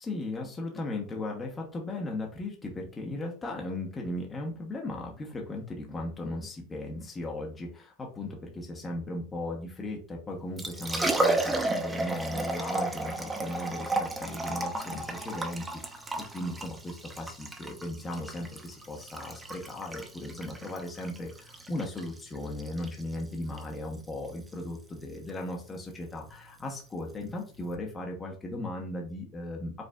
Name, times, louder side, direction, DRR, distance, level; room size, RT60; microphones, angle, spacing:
voice 1, 0.0-29.7, left 1 dB, 20° left, 0 dB, 0.9 m, -37 dB
Liquid, 10.4-27.7, right 2 dB, 10° right, 0.7 m, -34 dB
5.1 x 3.2 x 2.3 m, 0.36 s
supercardioid pair, 130°, 0 cm